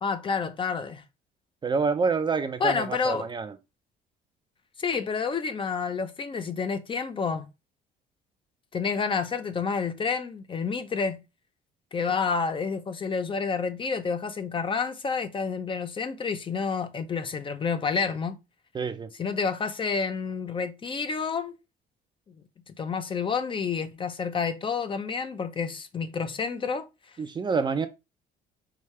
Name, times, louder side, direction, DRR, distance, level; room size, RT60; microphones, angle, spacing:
voice 1, 0.0-1.0 2.6-3.3 4.8-7.5 8.7-11.2 11.9-18.4 19.2-21.6 22.7-26.9, left 5 dB, 30° left, 0.6 m, -29 dB
voice 2, 1.6-3.6 18.7-19.1 27.2-27.9, right 5 dB, 25° right, 0.5 m, -27 dB
4.9 x 2.7 x 3.2 m
cardioid pair, 110°, 17 cm